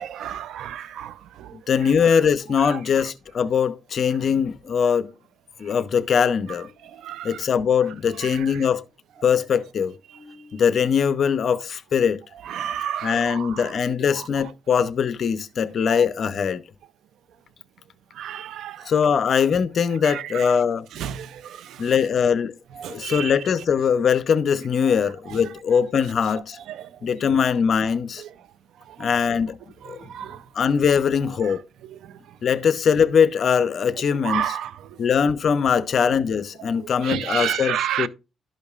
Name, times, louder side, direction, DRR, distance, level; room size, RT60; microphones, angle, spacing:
voice 1, 0.0-1.9 2.5-3.1 6.9-7.5 8.2-8.7 10.1-10.2 12.4-13.8 14.1-14.3 18.1-18.9 20.0-20.6 20.9-21.9 22.7-23.3 25.3-25.4 26.7-27.1 28.2-28.3 28.9-29.1 29.8-30.5 31.4-31.6 31.9-32.4 34.2-35.0 36.7-38.1, right 10 dB, 75° right, 0.4 m, -32 dB
voice 2, 1.7-5.1 5.6-6.7 7.2-8.8 9.2-12.2 13.0-16.6 18.9-20.9 21.8-22.5 22.9-26.6 27.0-28.2 29.0-29.6 29.9-30.0 30.5-31.6 32.4-34.5 35.0-38.1, left 7 dB, 55° left, 0.6 m, -21 dB
12.5 x 5.2 x 2.4 m
cardioid pair, 90°, 0 cm